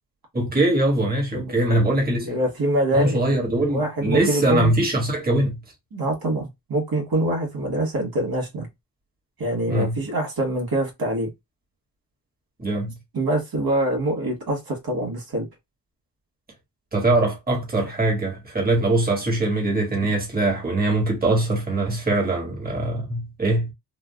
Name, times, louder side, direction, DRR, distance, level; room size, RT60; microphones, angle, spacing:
voice 1, 0.3-2.4 2.9-5.6 9.7-10.0 12.6-12.9 16.9-23.7, right 2 dB, 20° right, 1.7 m, -22 dB
voice 2, 1.3-1.8 2.2-3.2 3.7-4.7 5.9-8.7 9.4-11.3 13.1-15.5, right 1 dB, 55° right, 1.7 m, -24 dB
3.8 x 2.4 x 2.3 m
cardioid pair, 90°, 42 cm